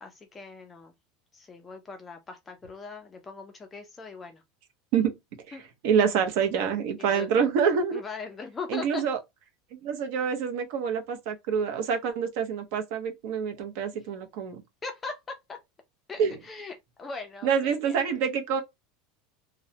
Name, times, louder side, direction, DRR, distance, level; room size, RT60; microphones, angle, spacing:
voice 1, 0.0-0.9 1.3-4.4 5.5-5.6 7.0-7.4 7.9-9.0 14.8-15.6 16.1-18.0, left 4 dB, 15° left, 0.3 m, -40 dB
voice 2, 5.8-8.0 8.7-9.2 9.8-14.6 16.2-16.4 17.4-18.6, right 7 dB, 55° right, 0.6 m, -26 dB
3.0 x 2.0 x 2.7 m
supercardioid pair, 170°, 0 cm